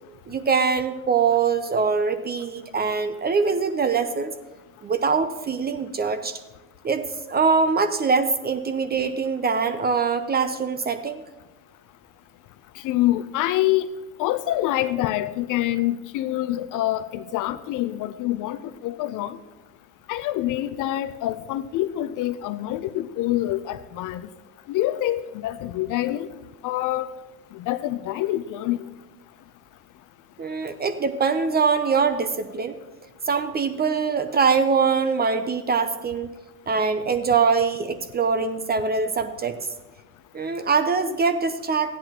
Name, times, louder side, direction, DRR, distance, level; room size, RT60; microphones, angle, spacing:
voice 1, 0.3-4.3 4.8-6.4 6.8-11.2 30.4-32.8 33.3-36.3 36.7-39.6 40.3-42.0, right 5 dB, 20° right, 10 dB, 0.6 m, -23 dB
voice 2, 12.8-13.9 14.2-19.4 20.1-24.3 24.7-26.3 26.6-27.1 27.5-28.9, left 14 dB, 40° left, 13 dB, 0.6 m, -26 dB
14.5 x 9.9 x 2.9 m, 1.1 s
hypercardioid pair, 80°, 47 cm